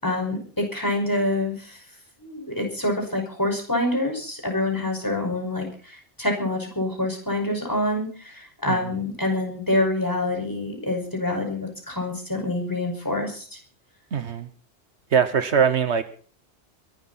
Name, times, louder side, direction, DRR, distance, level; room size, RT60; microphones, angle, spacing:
voice 1, 0.0-1.8 2.2-13.6, left 1 dB, 15° left, 2 dB, 5.6 m, -26 dB
voice 2, 14.1-14.5 15.1-16.0, right 7 dB, 75° right, 11 dB, 1.4 m, -21 dB
23.0 x 12.0 x 4.3 m, 0.42 s
omnidirectional pair, 1.2 m